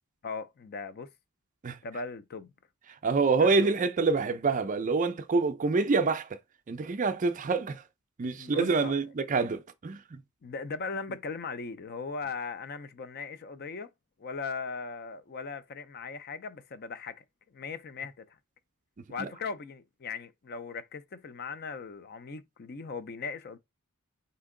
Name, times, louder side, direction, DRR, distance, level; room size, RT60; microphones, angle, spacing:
voice 1, 0.2-1.1 1.8-2.5 3.3-3.7 8.4-8.9 10.4-13.9 14.2-17.2 17.5-18.4 19.1-23.6, left 4 dB, 45° left, 0.4 m, -38 dB
voice 2, 3.0-6.4 6.7-7.8 8.2-10.2, right 4 dB, 35° right, 0.4 m, -26 dB
4.4 x 2.8 x 3.7 m
head